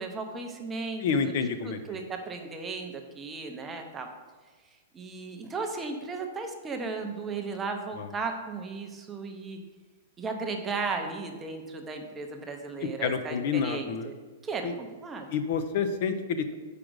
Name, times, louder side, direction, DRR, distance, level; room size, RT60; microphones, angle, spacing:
voice 1, 0.0-1.3 1.6-4.1 4.9-9.6 10.2-14.1 14.4-15.3, right 4 dB, 10° right, 3 dB, 0.6 m, -35 dB
voice 2, 1.0-1.8 8.0-8.1 13.0-14.1 14.6-14.7 15.3-16.5, left 6 dB, 45° left, 9 dB, 0.5 m, -28 dB
5.0 x 4.9 x 6.2 m, 1.4 s
hypercardioid pair, 165°, 0 cm